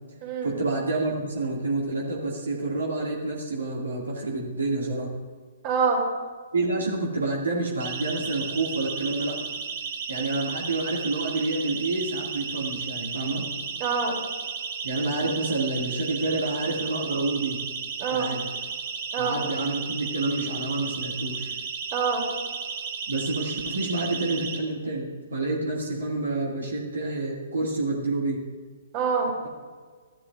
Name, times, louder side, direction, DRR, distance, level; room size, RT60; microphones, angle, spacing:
voice 1, 0.4-5.1 6.5-9.4 10.1-13.4 14.8-17.6 18.1-18.4 19.2-21.5 23.1-28.4, right 2 dB, 75° right, -3 dB, 2.2 m, -28 dB
voice 2, 5.6-6.0 10.2-10.3 13.8-14.2 18.0-18.3 19.1-19.4 21.9-22.2 28.9-29.3, right 5 dB, 35° right, -1 dB, 3.0 m, -25 dB
Siren, 7.8-24.6, right 6 dB, 50° right, 1.5 m, -34 dB
15.0 x 11.5 x 2.5 m, 1.5 s
figure-of-eight pair, 125°, 0 cm